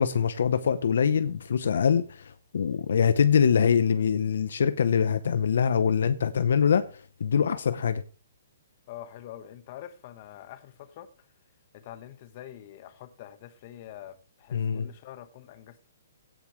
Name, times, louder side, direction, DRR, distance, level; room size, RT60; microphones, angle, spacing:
voice 1, 0.0-8.0 14.5-14.9, left 7 dB, 70° left, 0.8 m, -24 dB
voice 2, 8.9-11.3 11.7-15.9, left 12 dB, 40° left, 1.3 m, -45 dB
16.5 x 8.4 x 3.2 m
hypercardioid pair, 145°, 0 cm